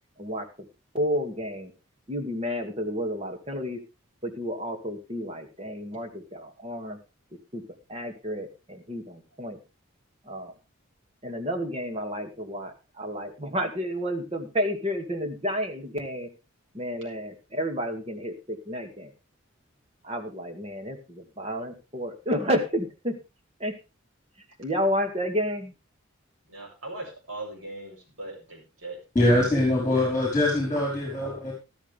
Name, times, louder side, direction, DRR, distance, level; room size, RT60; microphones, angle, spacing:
voice 1, 0.9-1.7 2.1-3.8 4.2-7.0 7.5-7.6 7.9-9.6 10.3-10.5 11.2-16.3 16.7-19.1 20.0-23.2 23.6-23.7 24.6-25.7, equal, 30° right, 5 dB, 2.3 m, -31 dB
voice 2, 26.5-29.0, right 2 dB, 85° right, 0 dB, 7.6 m, -39 dB
voice 3, 29.1-31.5, left 1 dB, 15° left, -2 dB, 4.8 m, -23 dB
13.5 x 13.0 x 3.5 m, 0.28 s
head